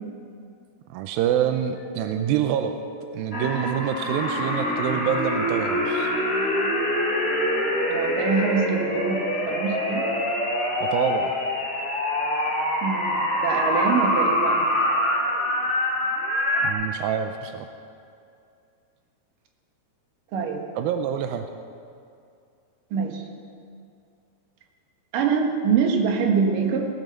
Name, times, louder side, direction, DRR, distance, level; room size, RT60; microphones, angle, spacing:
voice 1, 0.9-2.8 3.1-6.1 10.8-11.4 16.6-17.7 20.8-21.5, right 9 dB, 85° right, 6 dB, 2.1 m, -26 dB
sound 1, 1.7-5.1, equal, 65° left, 2.9 m, -41 dB
sound 2, 3.3-16.7, left 1 dB, 30° left, 1.0 m, -25 dB
voice 2, 7.9-10.1 12.8-14.6 20.3-20.6 22.9-23.2 25.1-26.9, right 5 dB, 65° right, 2 dB, 2.7 m, -24 dB
19.0 x 9.2 x 6.7 m, 2.4 s
omnidirectional pair, 4.7 m